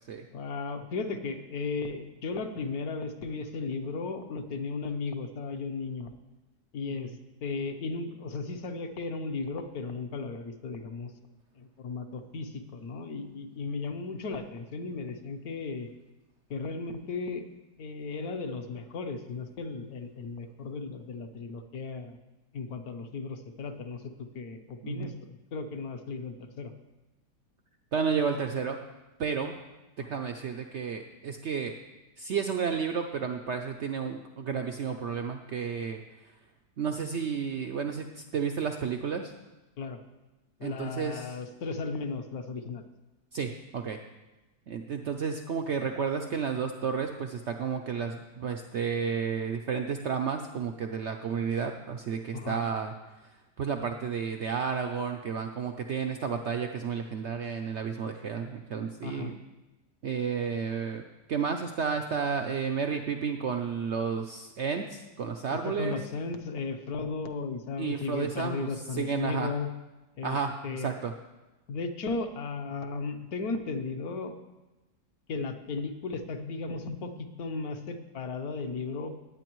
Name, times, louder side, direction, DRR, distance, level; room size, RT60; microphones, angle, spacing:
voice 1, 0.3-6.1 6.7-7.1 7.4-11.1 11.5-15.9 16.5-17.5 17.8-22.2 22.5-26.7 30.0-30.1 39.8-40.0 40.6-42.8 52.3-52.6 59.0-59.3 65.5-69.7 70.2-70.4 70.6-70.9 71.7-74.3 75.3-79.2, left 4 dB, 65° left, 7 dB, 1.3 m, -35 dB
voice 2, 27.9-28.8 29.2-29.5 30.0-31.7 32.2-36.0 36.8-38.1 38.3-39.3 40.6-41.3 43.3-44.0 44.7-52.9 53.6-59.3 60.0-61.0 61.3-66.0 67.8-68.7 69.0-69.5 70.2-71.1, right 6 dB, 80° right, 5 dB, 0.6 m, -31 dB
18.0 x 8.7 x 3.1 m, 1.1 s
omnidirectional pair, 1.9 m